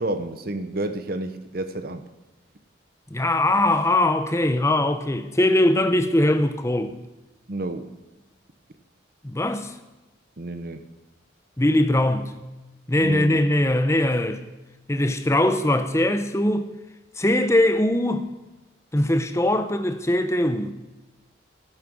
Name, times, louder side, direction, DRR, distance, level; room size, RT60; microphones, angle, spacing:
voice 1, 0.0-2.0 7.5-7.9 10.4-10.8 13.0-13.4, right 1 dB, 50° right, 0.8 m, -30 dB
voice 2, 3.1-6.9 9.2-9.7 11.6-12.3 12.9-14.4 14.9-16.7 17.2-18.3 18.9-20.7, left 1 dB, 15° left, 0.7 m, -21 dB
13.0 x 11.0 x 6.2 m
head